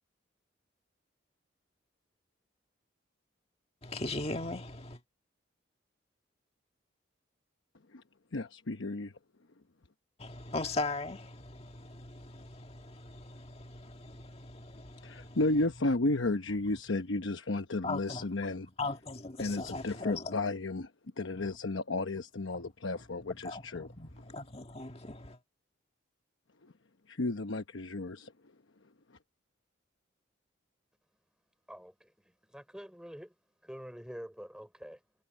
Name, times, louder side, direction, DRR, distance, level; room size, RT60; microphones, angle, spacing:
voice 1, 3.8-5.0 10.2-15.4 17.8-18.3 18.8-20.4 22.5-22.6 23.4-25.4, left 2 dB, 30° left, 1.8 m, -39 dB
voice 2, 8.3-9.1 15.0-18.7 19.4-20.9 21.2-23.9 27.1-28.3, left 2 dB, 85° left, 1.0 m, -33 dB
voice 3, 31.7-33.3 33.6-35.0, equal, 5° right, 4.0 m, -47 dB
head